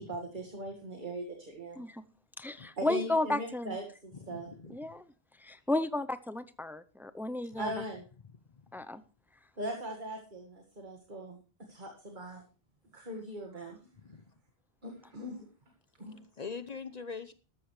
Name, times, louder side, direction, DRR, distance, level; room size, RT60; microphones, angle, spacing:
voice 1, 0.0-1.8 2.8-4.5 7.6-8.0 9.6-11.4 11.7-12.4 12.9-13.8 14.8-15.5 16.0-16.2, right 1 dB, 50° right, 2 dB, 2.1 m, -40 dB
voice 2, 2.4-3.8 4.7-5.0 5.4-7.7 8.7-9.0, left 2 dB, 5° right, 13 dB, 0.4 m, -33 dB
voice 3, 4.1-4.8 8.5-8.6 14.0-14.2 16.4-17.3, left 5 dB, 45° left, 12 dB, 0.9 m, -42 dB
13.0 x 13.0 x 3.2 m, 0.34 s
omnidirectional pair, 1.0 m